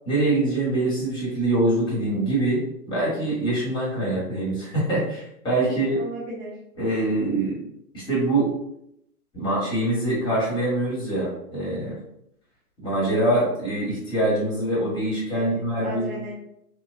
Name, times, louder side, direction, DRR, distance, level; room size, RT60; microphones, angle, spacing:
voice 1, 0.0-6.0 6.8-7.6 7.9-8.5 9.3-11.9 12.8-16.1, right 2 dB, 10° left, -6 dB, 1.1 m, -24 dB
voice 2, 5.7-6.6 15.3-16.3, right 1 dB, 10° right, -7 dB, 0.4 m, -36 dB
2.9 x 2.2 x 2.4 m, 0.76 s
figure-of-eight pair, 115°, 45 cm